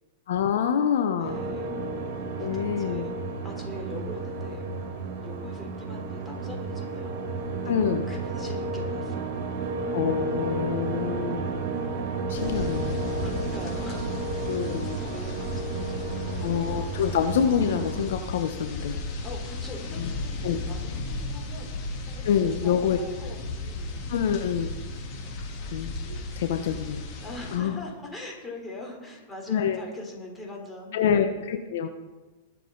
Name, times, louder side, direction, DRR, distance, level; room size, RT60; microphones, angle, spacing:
voice 1, 0.3-1.4 2.4-3.0 7.7-8.0 9.9-11.5 12.3-13.1 14.5-15.0 16.4-18.9 20.0-20.1 20.4-20.6 22.2-23.0 24.1-24.7 25.7-27.0 27.5-27.8 29.5-29.8 30.9-31.9, left 8 dB, 70° left, 7 dB, 1.1 m, -26 dB
voice 2, 1.2-1.7 2.4-3.1 3.4-4.7 5.2-7.3 7.6-7.7 8.1-9.4 13.1-14.5 14.7-16.4 19.2-24.0 25.1-25.5 27.2-31.0, left 1 dB, 10° left, 0 dB, 3.8 m, -42 dB
sound 1, 1.2-18.1, right 3 dB, 55° right, 2.6 m, -32 dB
sound 2, 12.3-27.6, left 2 dB, 40° left, 3.3 m, -35 dB
22.0 x 7.4 x 4.0 m, 1.2 s
hypercardioid pair, 125°, 0 cm